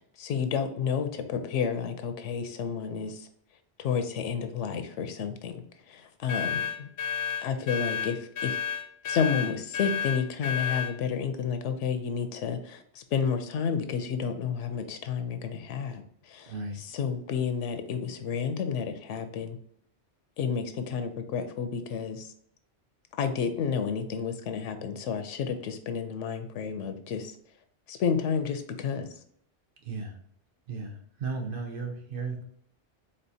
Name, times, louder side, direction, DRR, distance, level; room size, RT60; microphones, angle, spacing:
voice 1, 0.2-3.3 3.8-6.9 7.4-8.6 9.0-19.6 20.4-22.3 23.2-27.3 27.9-29.1, left 6 dB, 90° left, 9 dB, 0.9 m, -31 dB
sound 1, 6.3-11.0, left 8 dB, 60° left, 0.8 m, -31 dB
voice 2, 16.4-16.8 29.8-30.2 30.7-32.4, right 4 dB, 55° right, 2 dB, 0.8 m, -35 dB
4.4 x 3.7 x 2.7 m, 0.65 s
omnidirectional pair, 1.2 m